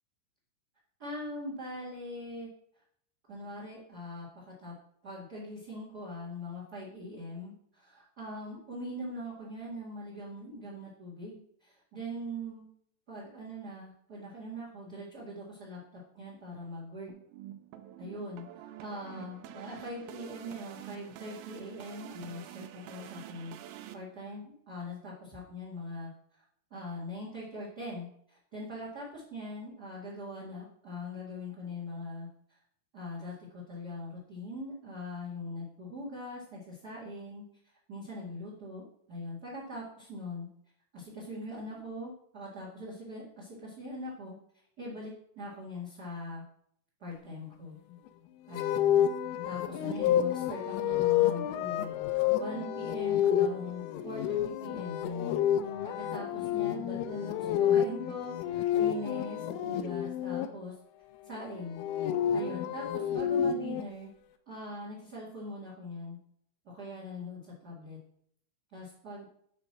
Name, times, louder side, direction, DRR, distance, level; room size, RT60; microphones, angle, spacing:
voice 1, 1.0-2.5 3.3-4.7 5.0-12.7 13.1-17.1 18.0-23.5 23.9-26.1 26.7-32.3 32.9-37.4 37.9-40.5 40.9-44.3 44.8-46.4 47.0-47.7 48.5-49.0 49.4-60.7 61.2-61.8 62.3-64.1 64.4-66.2 66.6-68.0 68.7-69.2, left 1 dB, 50° right, -5 dB, 1.1 m, -42 dB
sound 1, 17.1-23.9, right 11 dB, 85° right, 2.7 m, -47 dB
sound 2, 48.5-60.5 61.6-63.8, left 10 dB, 85° left, 3.2 m, -29 dB
9.6 x 4.3 x 6.0 m, 0.67 s
omnidirectional pair, 5.8 m